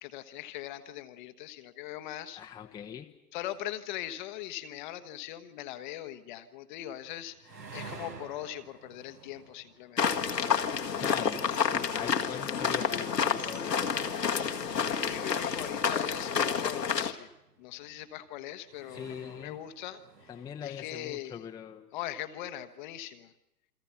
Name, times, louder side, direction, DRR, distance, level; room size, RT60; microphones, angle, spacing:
voice 1, 0.0-2.4 3.3-10.2 14.5-17.3 17.6-20.3 20.6-21.4 21.9-23.3, left 13 dB, 30° left, 11 dB, 1.2 m, -41 dB
voice 2, 2.4-3.1 11.0-13.9 18.9-19.6 20.3-21.9, left 8 dB, 10° left, 3 dB, 1.0 m, -41 dB
sound 1, 7.0-20.8, right 4 dB, 85° right, 5.8 m, -53 dB
sound 2, 10.0-17.1, left 6 dB, 80° left, 1.9 m, -29 dB
28.5 x 23.5 x 5.8 m, 0.88 s
figure-of-eight pair, 125°, 48 cm